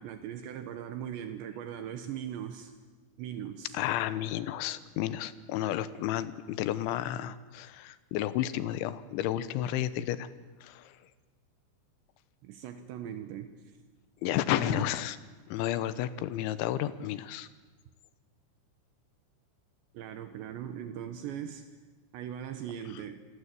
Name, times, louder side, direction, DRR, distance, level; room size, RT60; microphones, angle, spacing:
voice 1, 0.0-2.7 3.2-3.8 12.4-13.5 14.5-14.9 19.9-21.7 22.1-23.3, right 9 dB, 75° right, 9 dB, 3.3 m, -39 dB
voice 2, 3.7-10.3 10.6-11.0 14.2-15.2 15.5-17.5 22.9-23.0, left 12 dB, 80° left, 15 dB, 3.3 m, -32 dB
27.5 x 22.5 x 8.4 m, 1.3 s
omnidirectional pair, 5.5 m